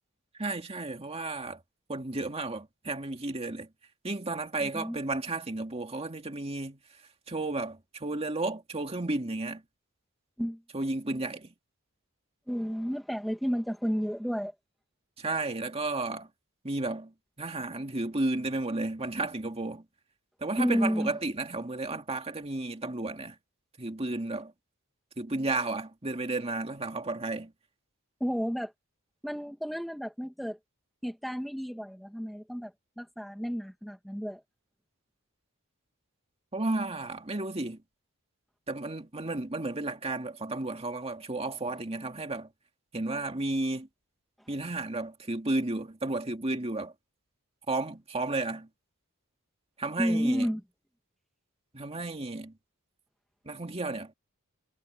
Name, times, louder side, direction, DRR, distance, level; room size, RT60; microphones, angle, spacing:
voice 1, 0.4-1.6 1.9-3.7 4.0-6.8 7.3-9.6 10.7-11.5 15.2-16.3 16.6-17.1 17.4-19.8 20.4-23.4 23.8-24.5 25.2-27.5 36.5-37.8 38.7-42.5 42.9-43.9 44.5-46.9 47.7-48.7 49.8-50.5 51.7-52.5 53.5-54.1, right 2 dB, 25° right, 2.2 m, -33 dB
voice 2, 4.6-5.0 10.4-10.6 12.5-14.5 20.6-21.1 28.2-28.7 29.2-30.6 31.0-34.4 44.4-44.5 50.0-50.6, equal, ahead, 1.7 m, -31 dB
head